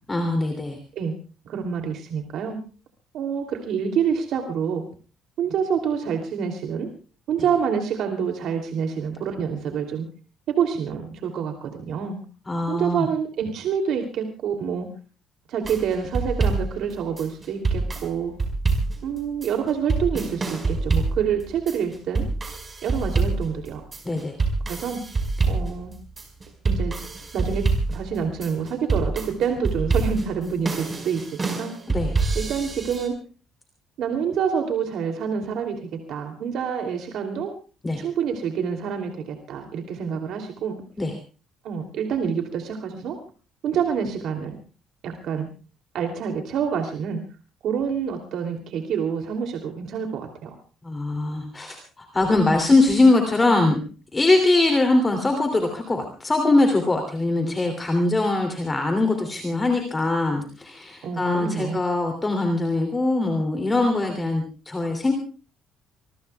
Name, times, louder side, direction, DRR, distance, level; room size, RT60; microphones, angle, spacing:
voice 1, 0.1-0.8 12.5-13.1 24.0-24.3 31.9-32.1 37.8-38.0 41.0-41.1 50.8-53.8 54.1-65.1, left 2 dB, 15° left, 4 dB, 2.8 m, -22 dB
voice 2, 1.4-2.6 3.1-4.8 5.4-6.9 7.3-10.1 10.5-12.2 12.7-14.9 15.5-18.3 19.0-22.3 22.8-23.8 24.7-25.0 25.5-25.9 26.6-27.0 27.3-31.7 32.3-33.2 34.0-37.5 38.0-40.8 41.6-43.2 43.6-44.6 45.0-45.5 45.9-47.2 47.6-50.5 61.0-61.8, right 7 dB, 60° right, 4 dB, 2.9 m, -27 dB
sound 1, 15.6-33.1, right 3 dB, 20° right, 5.0 m, -26 dB
25.5 x 22.0 x 2.3 m, 0.37 s
cardioid pair, 165°, 0 cm